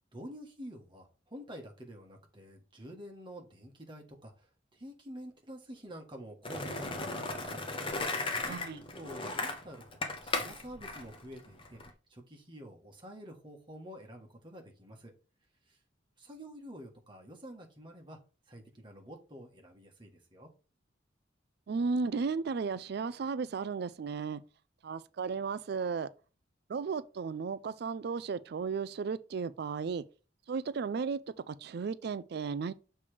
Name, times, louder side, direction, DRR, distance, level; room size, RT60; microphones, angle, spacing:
voice 1, 0.1-7.6 7.9-11.8 12.1-15.1 15.7-15.8 16.2-18.2 18.5-20.5, equal, 25° right, 1.6 m, -49 dB
Skateboard, 6.4-11.9, left 3 dB, 30° left, 1.1 m, -36 dB
voice 2, 8.5-8.8 21.7-24.4 24.8-26.1 26.7-30.0 30.5-32.7, right 5 dB, 60° right, 0.4 m, -34 dB
6.9 x 3.4 x 5.0 m
head